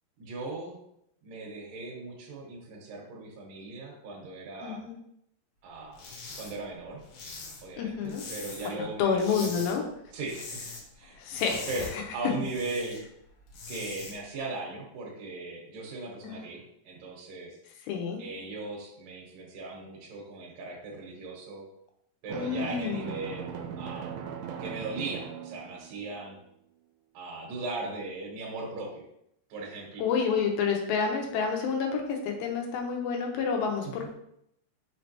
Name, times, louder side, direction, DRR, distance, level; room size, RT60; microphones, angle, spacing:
voice 1, 0.2-0.8 1.2-4.8 5.6-6.0 6.4-7.0 7.6-9.4 10.1-10.6 10.9-11.2 11.7-13.1 13.7-17.6 18.2-21.6 22.2-24.2 24.6-26.4 27.1-29.0 29.5-30.0 33.8-34.1, right 3 dB, 75° right, -2 dB, 2.3 m, -38 dB
voice 2, 4.6-4.9 7.8-8.2 8.6-9.8 11.2-11.7 16.2-16.4 17.9-18.2 22.3-23.1 30.0-34.1, left 6 dB, 85° left, 2 dB, 2.5 m, -29 dB
sound 1, 5.9-6.5 6.8-8.8 9.1-9.7 10.1-10.8 11.1-13.0 13.4-14.1, left 3 dB, 65° left, 2.0 m, -42 dB
Drum, 22.3-26.1, right 7 dB, 90° right, 2.5 m, -39 dB
5.9 x 3.2 x 2.8 m, 0.75 s
omnidirectional pair, 4.4 m